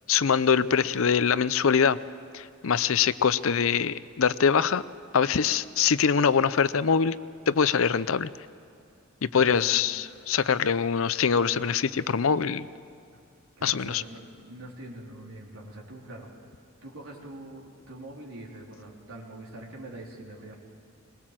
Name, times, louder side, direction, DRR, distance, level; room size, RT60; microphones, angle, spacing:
voice 1, 0.1-2.0 2.3-4.8 5.1-7.2 7.5-8.3 9.2-12.7 13.6-14.0, left 6 dB, 70° left, 16 dB, 0.5 m, -23 dB
voice 2, 9.3-9.8 11.4-11.7 13.6-16.3 16.8-20.5, right 1 dB, 75° right, -2 dB, 3.8 m, -43 dB
21.5 x 20.5 x 7.6 m, 2.3 s
head